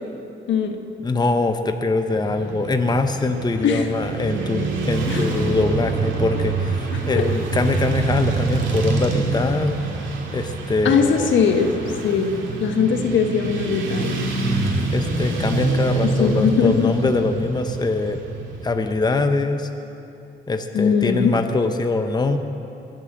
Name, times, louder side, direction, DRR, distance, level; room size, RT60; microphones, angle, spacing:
voice 1, 0.5-0.8 3.6-3.9 5.1-5.2 6.9-7.2 10.8-12.3 12.6-14.2 16.0-16.9 20.7-21.3, left 6 dB, 70° left, 5 dB, 1.5 m, -20 dB
voice 2, 1.0-9.8 10.3-11.3 14.9-18.2 18.6-19.7 20.5-22.4, left 3 dB, 20° left, 7 dB, 0.9 m, -23 dB
Motorcycle / Traffic noise roadway noise, 2.1-18.7, right 3 dB, 75° right, 2.6 m, -26 dB
21.5 x 7.7 x 7.7 m, 2.8 s
cardioid pair, 90°, 20 cm